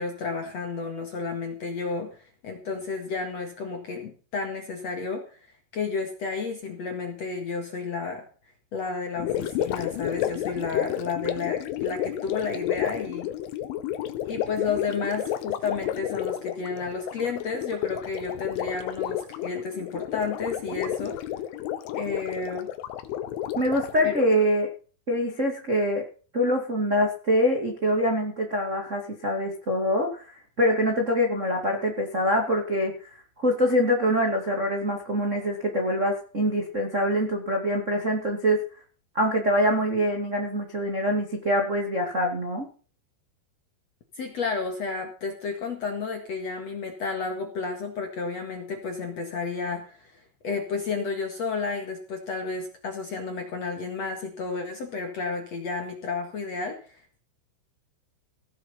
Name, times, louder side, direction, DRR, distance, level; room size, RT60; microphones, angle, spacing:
voice 1, 0.0-2.2 2.4-5.2 5.7-8.2 8.7-13.3 14.2-21.2 21.9-22.7 24.0-24.2 44.2-57.2, left 4 dB, 55° left, 4 dB, 2.0 m, -31 dB
Gurgling, 9.2-24.5, left 12 dB, 80° left, 3.6 m, -31 dB
voice 2, 23.5-24.7 25.1-26.0 26.3-33.1 33.4-38.6 39.1-42.7, equal, 60° right, 1 dB, 0.7 m, -24 dB
17.0 x 7.7 x 5.8 m, 0.40 s
omnidirectional pair, 5.7 m